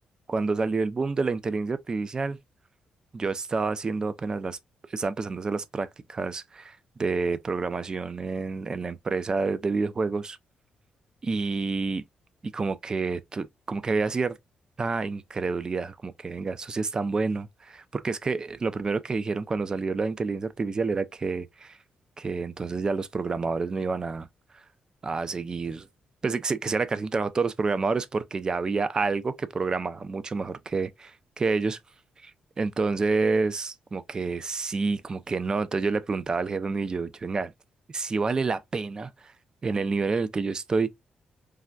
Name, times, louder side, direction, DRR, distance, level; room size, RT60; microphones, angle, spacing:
voice 1, 0.3-2.4 3.1-4.6 4.9-10.4 11.2-12.0 12.4-14.4 14.8-21.8 22.2-24.3 24.5-24.6 25.0-25.8 26.2-31.8 32.2-32.3 32.6-37.5 37.9-39.3 39.6-40.9, right 4 dB, 25° right, 0.3 m, -28 dB
3.4 x 2.1 x 2.3 m
cardioid pair, 135°, 3 cm